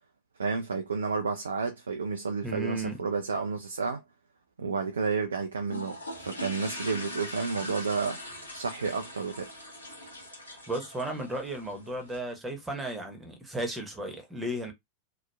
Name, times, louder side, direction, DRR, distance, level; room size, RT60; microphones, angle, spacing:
voice 1, 0.4-4.0 4.6-8.2 8.5-9.5, right 5 dB, 70° right, 0.4 m, -31 dB
voice 2, 2.4-3.0 10.7-14.7, right 1 dB, 10° right, 1.0 m, -34 dB
sound 1, 5.6-12.2, left 1 dB, 80° left, 1.1 m, -41 dB
2.9 x 2.2 x 2.2 m
figure-of-eight pair, 90°, 0 cm